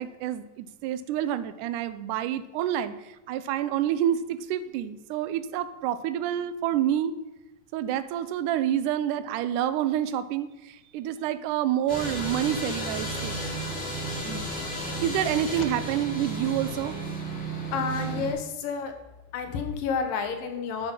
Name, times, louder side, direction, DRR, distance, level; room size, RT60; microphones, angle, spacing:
voice 1, 0.0-7.2 7.7-13.4 14.2-14.5 15.0-17.0, right 11 dB, 80° right, 12 dB, 2.0 m, -28 dB
sound 1, 11.9-18.3, right 1 dB, 30° left, 2.7 m, -33 dB
voice 2, 17.7-18.9 19.3-20.9, left 5 dB, 80° left, 6 dB, 2.8 m, -30 dB
9.8 x 9.0 x 5.4 m, 0.98 s
omnidirectional pair, 4.0 m